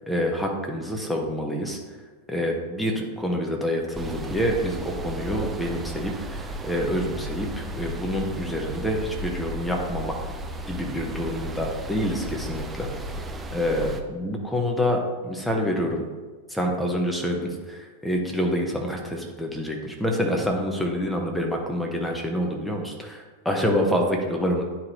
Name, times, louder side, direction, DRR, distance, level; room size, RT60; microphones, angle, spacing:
voice 1, 0.1-1.8 2.3-10.3 10.7-12.9 13.5-16.0 16.5-24.6, equal, 5° left, 1 dB, 1.1 m, -27 dB
sound 1, 3.9-14.0, equal, 15° right, 0.6 m, -34 dB
9.9 x 4.8 x 3.2 m, 1.4 s
figure-of-eight pair, 90°, 0 cm